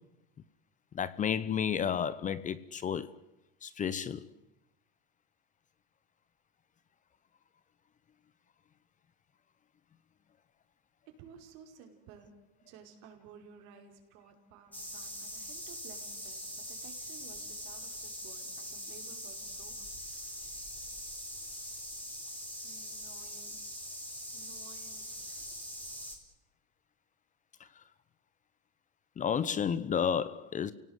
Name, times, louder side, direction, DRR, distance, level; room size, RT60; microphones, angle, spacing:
voice 1, 0.9-3.1 3.6-4.3 29.2-30.7, left 8 dB, 25° left, 0.9 m, -31 dB
voice 2, 11.1-20.4 22.6-23.6 24.3-25.6, right 7 dB, 65° right, 5.2 m, -55 dB
sound 1, 14.7-26.2, equal, 5° left, 4.6 m, -42 dB
29.0 x 18.0 x 8.1 m
supercardioid pair, 125°, 30 cm